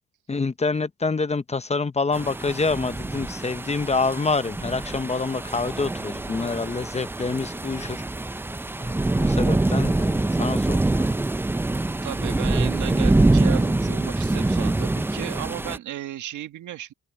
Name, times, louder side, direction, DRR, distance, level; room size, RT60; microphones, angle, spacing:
voice 1, 0.3-8.0 8.8-11.1, left 4 dB, 20° left, 0.9 m, -27 dB
sound 1, 2.1-15.8, right 2 dB, 5° right, 0.4 m, -24 dB
voice 2, 12.0-16.9, right 12 dB, 75° right, 1.9 m, -34 dB
open air
cardioid pair, 90°, 30 cm